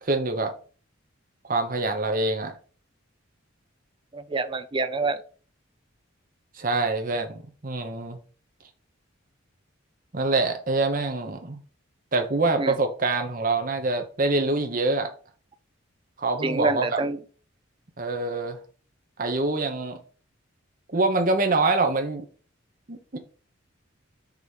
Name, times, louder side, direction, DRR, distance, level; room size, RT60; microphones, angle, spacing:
voice 1, 0.0-0.5 1.5-2.5 6.6-8.2 10.1-11.6 12.1-15.1 16.2-17.0 18.0-18.6 19.2-20.0 20.9-22.2 22.9-23.2, right 3 dB, 40° right, 1.0 m, -25 dB
voice 2, 4.1-5.2 12.6-12.8 16.4-17.2, right 3 dB, 25° right, 0.5 m, -26 dB
6.0 x 3.1 x 5.3 m
head